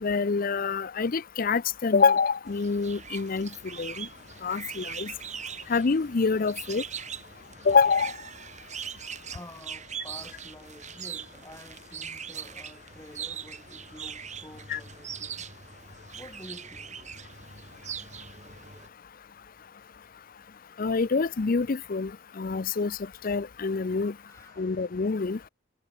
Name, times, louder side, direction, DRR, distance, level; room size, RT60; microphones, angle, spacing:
voice 1, 0.0-3.5 3.8-4.1 4.4-5.1 5.7-6.8 7.7-8.1 14.7-14.8 20.8-22.1 22.4-23.0 23.2-24.1 24.6-25.4, left 5 dB, 45° left, 0.5 m, -26 dB
sound 1, 2.5-18.9, right 7 dB, 35° right, 6.1 m, -41 dB
voice 2, 9.3-15.5 16.1-17.0 24.2-24.7, left 1 dB, 15° left, 5.5 m, -49 dB
head